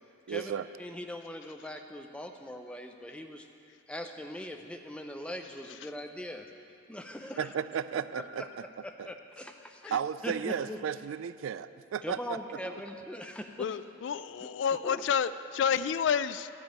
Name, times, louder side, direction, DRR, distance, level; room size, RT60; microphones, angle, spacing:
voice 1, 0.3-0.7 7.4-8.5 9.0-9.1 9.9-12.4, right 8 dB, 85° right, 15 dB, 0.3 m, -34 dB
voice 2, 0.8-3.5 3.9-6.5 6.9-7.5 8.1-8.5 8.8-9.9 10.2-10.8 12.0-13.7 14.8-15.0, left 1 dB, 5° left, 4 dB, 0.5 m, -41 dB
voice 3, 13.6-16.5, left 7 dB, 65° left, 15 dB, 0.3 m, -29 dB
12.5 x 5.2 x 8.8 m, 2.6 s
head